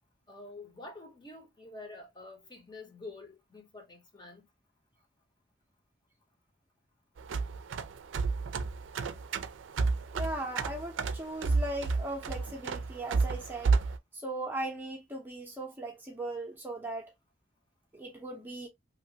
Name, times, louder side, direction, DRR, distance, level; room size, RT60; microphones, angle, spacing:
voice 1, 0.3-4.4, left 2 dB, 25° left, 0.7 m, -47 dB
sound 1, 7.2-14.0, right 4 dB, 90° right, 0.4 m, -31 dB
voice 2, 10.1-13.8 14.1-17.1 17.9-18.7, right 1 dB, 10° right, 0.5 m, -38 dB
2.9 x 2.4 x 2.6 m
head